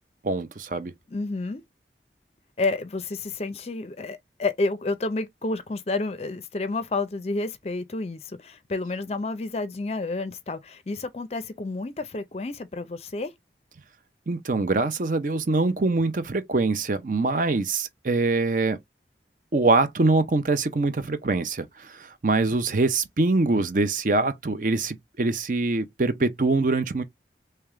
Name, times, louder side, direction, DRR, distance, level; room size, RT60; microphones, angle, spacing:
voice 1, 0.2-0.9 14.3-18.8 19.5-27.0, right 3 dB, 45° right, 0.6 m, -24 dB
voice 2, 1.1-1.6 2.6-13.3, left 3 dB, 35° left, 0.4 m, -30 dB
3.4 x 3.3 x 3.6 m
head